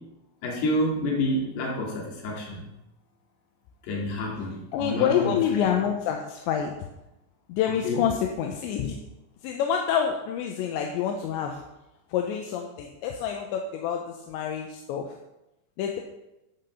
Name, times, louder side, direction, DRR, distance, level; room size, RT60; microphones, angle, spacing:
voice 1, 0.4-2.7 3.9-5.3 7.8-8.0, left 1 dB, 65° left, -2 dB, 4.2 m, -28 dB
voice 2, 4.7-6.8 7.5-9.0 9.4-11.6 12.1-15.1 15.8-16.0, left 8 dB, 80° left, 2 dB, 3.1 m, -27 dB
11.5 x 5.9 x 7.0 m, 0.92 s
omnidirectional pair, 5.4 m